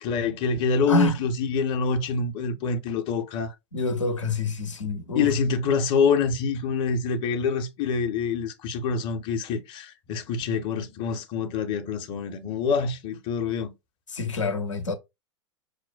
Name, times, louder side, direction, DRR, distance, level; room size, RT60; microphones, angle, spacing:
voice 1, 0.0-3.5 5.1-13.7, left 5 dB, 30° left, 0.5 m, -26 dB
voice 2, 0.9-1.2 3.7-5.3 14.1-14.9, left 1 dB, 80° left, 0.6 m, -26 dB
4.9 x 2.1 x 2.2 m
figure-of-eight pair, 95°, 16 cm